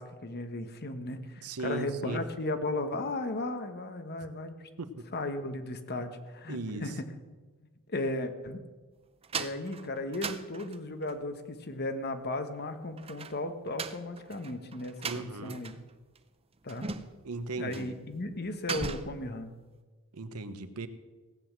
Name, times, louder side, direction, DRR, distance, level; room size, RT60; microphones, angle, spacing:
voice 1, 0.0-4.5 5.1-7.0 7.9-8.6 9.3-15.8 16.6-17.0 17.6-19.5, left 2 dB, 45° left, 8 dB, 1.2 m, -35 dB
voice 2, 1.4-2.2 4.8-5.1 6.5-6.9 15.0-15.6 17.2-18.0 20.1-20.9, right 3 dB, 80° right, 10 dB, 1.0 m, -37 dB
sound 1, 9.2-11.2 13.0-15.9 16.1-16.2 16.7-17.3 17.7-18.0 18.3-19.3, right 5 dB, 25° right, 0.6 m, -39 dB
17.0 x 7.9 x 7.4 m, 1.3 s
head